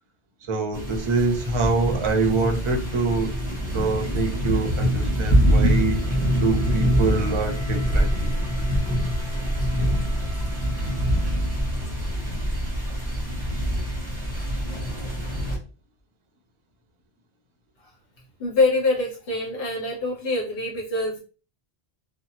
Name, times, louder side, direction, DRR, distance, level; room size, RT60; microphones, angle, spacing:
voice 1, 0.5-3.4 3.7-6.0 6.4-8.4, right 3 dB, 35° right, 2 dB, 0.5 m, -25 dB
sound 1, 0.7-15.6, equal, 10° left, 1.0 m, -24 dB
Wind instrument woodwind instrument, 3.9-12.0, right 1 dB, 35° left, 1.1 m, -48 dB
voice 2, 18.4-21.2, left 3 dB, 70° left, -3 dB, 1.3 m, -24 dB
2.8 x 2.3 x 2.7 m, 0.35 s
omnidirectional pair, 1.1 m